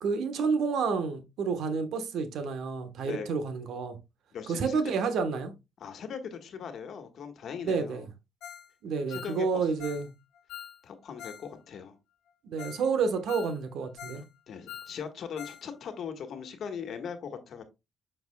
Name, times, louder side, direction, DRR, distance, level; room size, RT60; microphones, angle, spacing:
voice 1, 0.0-4.0 4.5-5.5 7.6-8.0 8.8-10.1 12.4-14.2, right 5 dB, 75° right, 1.2 m, -29 dB
voice 2, 4.3-4.8 5.8-8.1 9.0-9.7 10.8-12.0 14.5-17.6, left 7 dB, 65° left, 1.4 m, -40 dB
Ringtone, 8.4-8.7 9.0-11.5 11.7-11.8 12.3-12.4 12.6-12.9 13.1-14.3 14.5-15.7 15.9-16.0 16.5-16.6, left 9 dB, 85° left, 1.0 m, -45 dB
7.3 x 6.0 x 2.3 m
cardioid pair, 90°, 0 cm